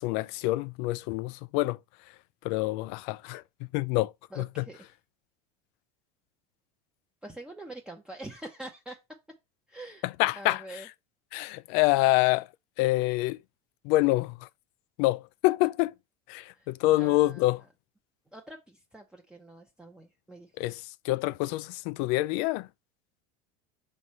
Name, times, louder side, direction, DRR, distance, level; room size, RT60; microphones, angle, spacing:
voice 1, 0.0-1.8 2.4-3.4 3.7-4.7 10.0-10.8 11.3-12.5 12.8-13.4 13.8-14.5 15.0-15.9 16.3-17.6 20.6-22.7, left 18 dB, 65° left, 0.4 m, -26 dB
voice 2, 4.3-4.9 7.2-9.0 9.7-10.0 10.3-10.9 16.5-16.7 17.0-17.5 18.3-20.5, right 1 dB, 5° right, 0.7 m, -45 dB
6.1 x 3.3 x 5.4 m
supercardioid pair, 135°, 19 cm